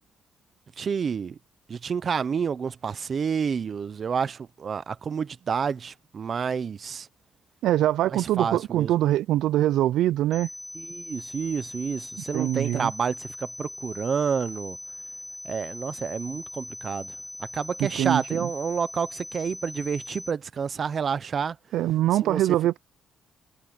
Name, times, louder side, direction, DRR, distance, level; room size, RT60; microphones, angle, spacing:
voice 1, 0.8-1.4 1.7-7.1 8.1-8.9 10.7-14.8 15.4-17.1 17.5-21.6 22.2-22.5, right 6 dB, 45° right, 0.7 m, -29 dB
voice 2, 7.6-10.5 12.3-12.9 17.8-18.5 21.7-22.8, right 13 dB, 85° right, 0.4 m, -23 dB
sound 1, 10.3-20.3, left 2 dB, 15° left, 2.1 m, -40 dB
cardioid pair, 90°, 0 cm